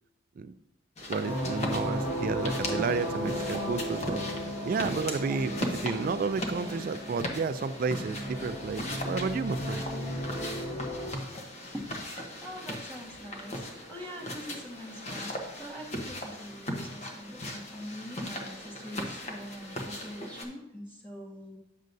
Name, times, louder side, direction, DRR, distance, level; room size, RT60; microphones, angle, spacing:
sound 1, 1.0-20.4, left 1 dB, 35° left, 1.0 m, -38 dB
voice 1, 1.1-4.2 4.6-9.8, right 4 dB, 45° right, 12 dB, 0.3 m, -31 dB
sound 2, 1.2-11.1, equal, 75° left, 3.0 m, -35 dB
voice 2, 5.2-6.0 11.7-12.0 12.4-21.6, equal, 10° left, -2 dB, 1.4 m, -43 dB
9.3 x 6.4 x 2.6 m, 0.86 s
head